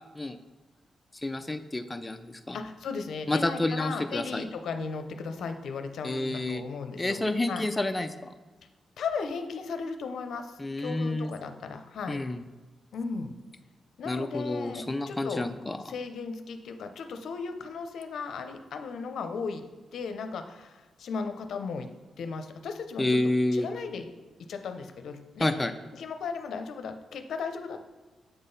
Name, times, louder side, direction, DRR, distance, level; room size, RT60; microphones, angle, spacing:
voice 1, 1.2-2.6 3.3-4.5 6.0-6.6 7.0-8.3 10.6-11.3 12.1-12.4 14.1-15.8 23.0-23.7 25.4-25.7, left 2 dB, 15° left, 7 dB, 0.3 m, -29 dB
voice 2, 2.5-7.2 7.5-7.6 9.0-12.2 12.9-13.3 14.0-15.4 15.9-19.6 19.9-21.9 22.2-24.1 24.5-25.5 26.0-27.8, left 5 dB, 75° left, 7 dB, 0.6 m, -36 dB
7.9 x 3.8 x 3.9 m, 1.2 s
cardioid pair, 90°, 0 cm